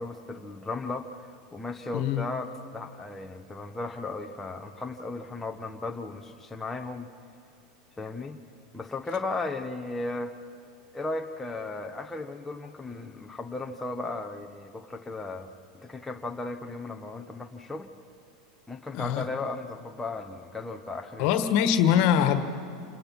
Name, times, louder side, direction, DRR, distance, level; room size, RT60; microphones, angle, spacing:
voice 1, 0.0-7.1 8.0-8.4 8.7-10.3 10.9-15.5 15.8-17.9 18.7-21.4, left 3 dB, 10° left, 3 dB, 1.1 m, -36 dB
voice 2, 1.9-2.2 18.9-19.2 21.2-22.4, left 9 dB, 60° left, 9 dB, 1.7 m, -23 dB
28.0 x 19.5 x 6.0 m, 2.6 s
supercardioid pair, 120°, 3 cm